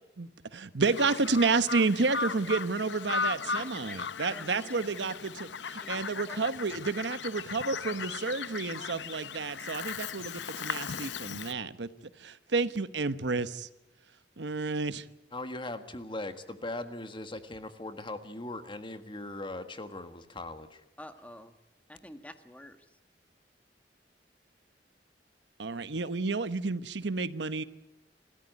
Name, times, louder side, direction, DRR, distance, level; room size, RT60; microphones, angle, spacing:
voice 1, 0.2-11.9 12.2-13.5 14.4-15.0 25.6-27.6, right 4 dB, 85° right, 14 dB, 1.0 m, -30 dB
Bird vocalization bird call bird song, 0.8-11.5, left 5 dB, 90° left, 0.8 m, -37 dB
voice 2, 2.9-5.2 5.8-6.5 21.0-21.5 21.9-22.8, left 1 dB, 10° left, 9 dB, 1.5 m, -49 dB
voice 3, 15.3-20.8, left 2 dB, 30° left, 9 dB, 1.6 m, -39 dB
27.5 x 14.0 x 9.4 m, 0.94 s
head